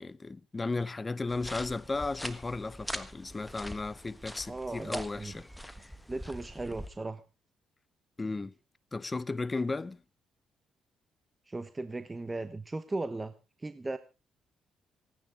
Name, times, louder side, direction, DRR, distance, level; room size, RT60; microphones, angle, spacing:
voice 1, 0.0-5.4 8.2-8.5 8.9-10.0, left 3 dB, 25° left, 0.7 m, -35 dB
sound 1, 1.3-6.9, equal, 5° left, 1.4 m, -43 dB
voice 2, 4.5-5.4 6.1-7.2 11.5-13.3 13.6-14.0, right 2 dB, 20° right, 1.0 m, -37 dB
26.0 x 9.5 x 3.5 m
cardioid pair, 90°, 0 cm